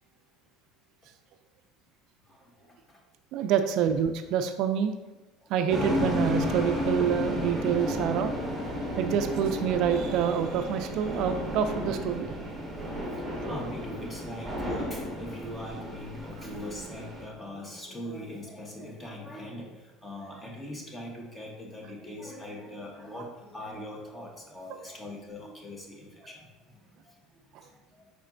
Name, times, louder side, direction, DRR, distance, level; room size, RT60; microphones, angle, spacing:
voice 1, 2.2-3.0 5.4-5.5 12.8-28.1, left 1 dB, 15° left, 0 dB, 0.9 m, -42 dB
voice 2, 3.3-4.9 5.5-8.3 9.0-12.3, right 8 dB, 60° right, 7 dB, 0.3 m, -27 dB
sound 1, 5.7-17.2, left 1 dB, 5° right, 1.2 m, -33 dB
4.8 x 4.2 x 2.5 m, 1.1 s
cardioid pair, 135°, 0 cm